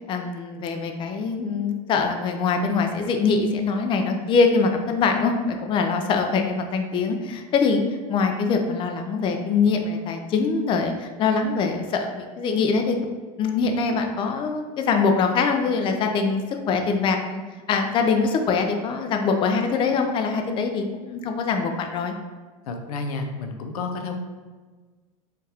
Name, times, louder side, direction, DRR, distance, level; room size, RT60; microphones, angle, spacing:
voice 1, 0.0-7.8 8.1-13.0 13.4-17.4 17.7-22.1, left 4 dB, 30° left, 4 dB, 0.4 m, -23 dB
voice 2, 22.7-24.1, left 3 dB, 85° left, 5 dB, 0.5 m, -30 dB
4.1 x 2.4 x 3.3 m, 1.4 s
supercardioid pair, 110°, 18 cm